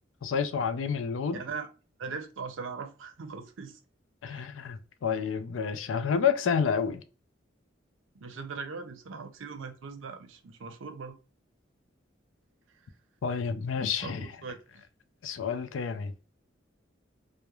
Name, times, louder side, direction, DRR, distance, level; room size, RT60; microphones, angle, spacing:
voice 1, 0.2-1.4 4.2-7.0 13.2-14.3 15.2-16.3, left 6 dB, 80° left, 0.4 m, -29 dB
voice 2, 1.3-1.7 2.0-3.8 4.3-4.5 8.1-11.1 14.0-14.8, right 5 dB, 85° right, 0.5 m, -40 dB
2.3 x 2.1 x 2.9 m
head